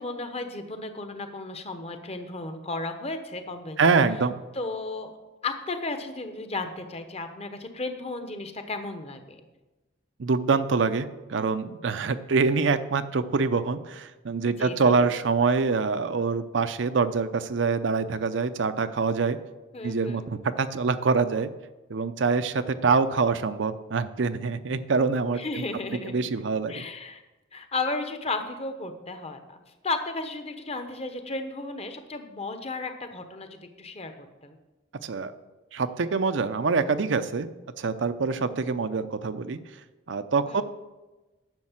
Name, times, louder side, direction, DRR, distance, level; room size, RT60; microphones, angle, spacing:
voice 1, 0.0-4.0 4.5-5.2 5.4-9.4 14.4-15.0 19.7-20.2 25.3-26.3 26.7-27.2 27.5-29.6 29.8-34.6 40.5-40.6, left 3 dB, 35° left, 7 dB, 1.0 m, -34 dB
voice 2, 3.8-4.4 10.2-19.4 19.8-21.5 21.9-25.6 26.0-26.8 35.0-35.3 35.7-37.5 37.8-39.6 40.1-40.6, right 4 dB, 70° right, 11 dB, 0.6 m, -25 dB
10.5 x 6.5 x 7.4 m, 1.1 s
head